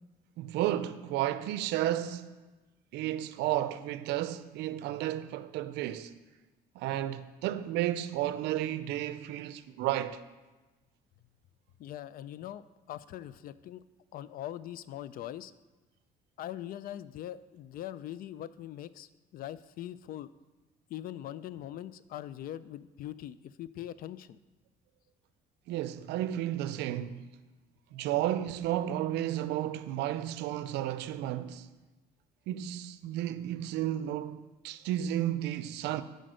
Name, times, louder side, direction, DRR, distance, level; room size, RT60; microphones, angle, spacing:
voice 1, 0.4-2.3 2.9-6.1 6.8-10.2 25.7-27.3 27.9-31.7 32.5-36.0, right 12 dB, 85° right, 0.5 m, -32 dB
voice 2, 11.8-13.8 14.1-15.5 16.4-20.3 20.9-24.4, left 12 dB, 60° left, 0.4 m, -42 dB
7.9 x 5.1 x 6.3 m
cardioid pair, 110°, 17 cm